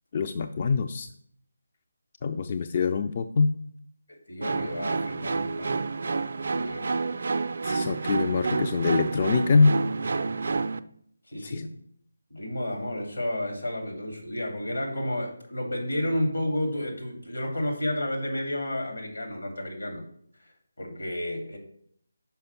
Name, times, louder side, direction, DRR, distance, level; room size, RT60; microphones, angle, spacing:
voice 1, 0.1-1.1 2.2-3.5 7.6-9.7 11.4-11.6, left 4 dB, 35° left, 8 dB, 0.3 m, -24 dB
voice 2, 4.3-5.8 6.4-6.8 11.3-11.7 12.3-20.0 20.4-20.5 20.8-21.6, left 1 dB, 80° left, 1 dB, 2.7 m, -31 dB
sound 1, 4.4-10.8, right 4 dB, 55° right, 0.4 m, -29 dB
5.7 x 5.0 x 5.9 m, 0.67 s
figure-of-eight pair, 155°, 0 cm